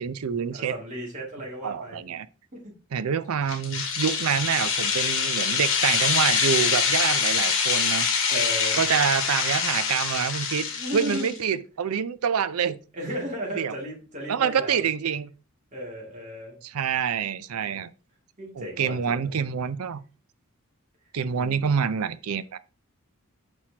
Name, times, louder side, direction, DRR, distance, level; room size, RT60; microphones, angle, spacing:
voice 1, 0.0-0.7 1.6-2.3 2.9-8.1 8.8-10.7 10.9-12.8 13.6-13.7 14.3-15.3 16.6-17.9 18.6-20.0 21.1-22.6, right 7 dB, 80° right, 0.5 m, -26 dB
voice 2, 0.5-2.0 2.5-2.7 8.3-8.8 10.7-11.4 12.9-14.8 15.7-16.6 18.4-19.3 21.3-21.8, equal, 35° right, 2.5 m, -35 dB
sound 1, 3.5-11.4, left 6 dB, 65° left, 1.5 m, -25 dB
6.2 x 5.8 x 2.8 m
head